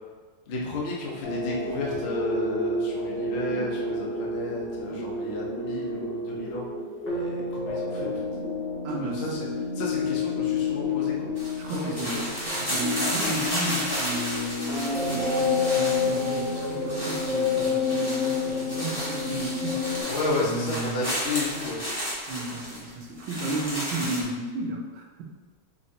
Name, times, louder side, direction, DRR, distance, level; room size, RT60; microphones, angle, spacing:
voice 1, 0.5-6.7 7.0-8.1 9.0-9.5 9.8-11.3 11.7-12.2 20.1-21.8, left 2 dB, 45° left, -4 dB, 0.8 m, -32 dB
sound 1, 1.2-20.0, left 3 dB, 70° left, 2.1 m, -29 dB
voice 2, 8.8-9.6 11.6-20.1 20.4-21.1 22.3-25.2, right 2 dB, 85° right, -1 dB, 1.5 m, -33 dB
sound 2, 11.4-24.2, equal, 15° left, 0.9 m, -33 dB
5.4 x 3.2 x 2.8 m, 1.4 s
omnidirectional pair, 2.0 m